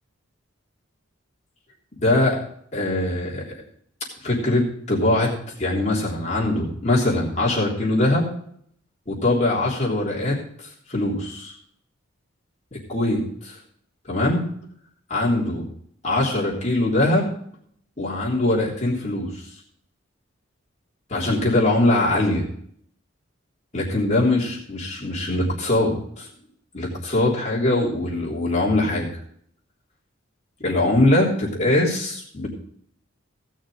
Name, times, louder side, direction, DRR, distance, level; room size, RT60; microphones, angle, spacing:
voice 1, 2.0-2.4 2.7-3.5 4.2-5.3 5.6-8.3 9.1-11.5 12.7-13.6 14.1-14.4 15.1-15.6 16.0-17.3 18.0-19.4 21.1-22.4 23.7-26.3 26.7-29.1 30.6-32.5, left 2 dB, 35° left, -4 dB, 3.4 m, -22 dB
17.0 x 6.4 x 4.9 m, 0.65 s
head